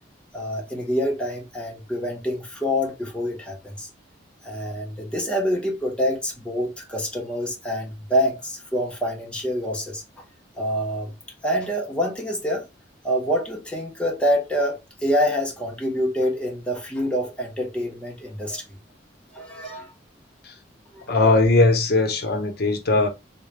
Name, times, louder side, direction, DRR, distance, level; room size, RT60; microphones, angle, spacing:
voice 1, 0.3-3.9 4.4-10.2 10.5-11.1 11.4-12.7 13.0-18.8 19.3-19.9 20.9-21.0, equal, 5° left, 0.9 m, -26 dB
voice 2, 21.1-23.1, left 2 dB, 55° left, 0.8 m, -19 dB
3.8 x 2.2 x 3.2 m
head